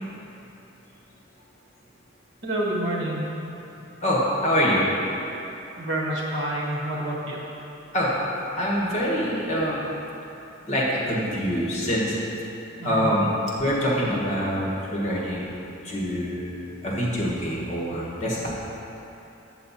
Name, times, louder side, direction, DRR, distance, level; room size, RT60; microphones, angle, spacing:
voice 1, 2.4-3.3 5.7-7.4 12.8-13.1, right 1 dB, 65° right, -4 dB, 1.6 m, -28 dB
voice 2, 4.0-4.8 7.9-8.1 8.6-9.9 10.6-12.2 12.8-15.5 15.8-18.5, equal, 35° left, -5 dB, 1.6 m, -25 dB
8.2 x 6.8 x 4.2 m, 2.9 s
head